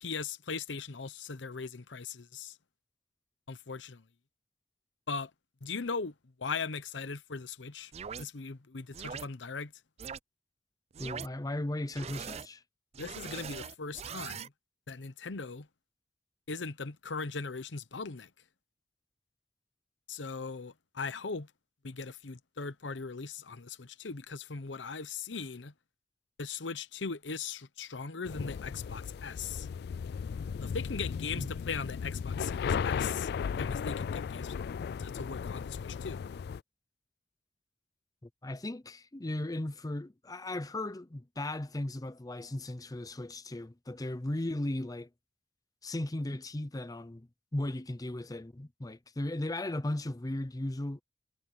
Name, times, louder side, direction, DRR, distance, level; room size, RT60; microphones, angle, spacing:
voice 1, 0.0-2.6 3.5-4.0 5.1-5.3 5.6-6.1 6.4-7.9 8.2-9.7 13.0-14.5 14.9-15.7 16.5-18.3 20.1-21.5 21.8-25.7 26.4-29.7 30.6-33.3 33.6-34.6 35.0-36.2, left 5 dB, 80° left, 0.9 m, -39 dB
sound 1, 7.9-8.2 8.9-9.2 10.0-10.2 10.9-11.3 11.9-12.5 12.9-14.5, right 7 dB, 35° right, 0.4 m, -41 dB
voice 2, 11.0-12.6 31.4-31.5 38.4-45.1 45.8-51.0, left 1 dB, 20° left, 0.6 m, -36 dB
sound 2, 28.2-36.6, left 6 dB, 60° left, 0.3 m, -35 dB
head